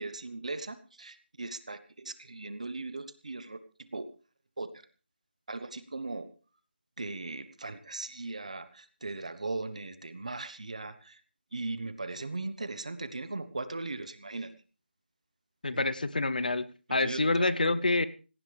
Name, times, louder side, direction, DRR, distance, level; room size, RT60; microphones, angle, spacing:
voice 1, 0.0-4.1 4.6-4.7 5.5-6.3 7.0-11.2 11.5-14.5 15.7-15.9 16.9-17.8, right 3 dB, 40° right, 13 dB, 1.2 m, -38 dB
voice 2, 15.6-18.1, left 2 dB, 50° left, 16 dB, 0.8 m, -27 dB
18.0 x 17.5 x 3.4 m, 0.36 s
figure-of-eight pair, 180°, 6 cm